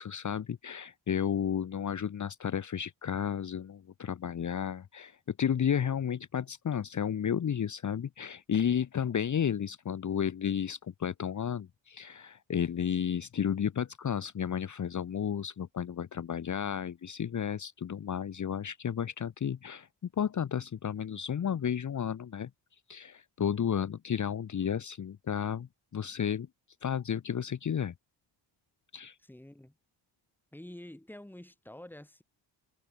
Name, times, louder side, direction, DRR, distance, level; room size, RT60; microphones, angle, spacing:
voice 1, 0.0-19.9 20.2-22.5 22.9-26.5 26.8-27.9 28.9-29.2, left 8 dB, 40° left, 1.1 m, -32 dB
voice 2, 29.2-29.8 30.5-32.2, left 1 dB, 5° left, 2.5 m, -48 dB
wide cardioid pair, 135°, 44 cm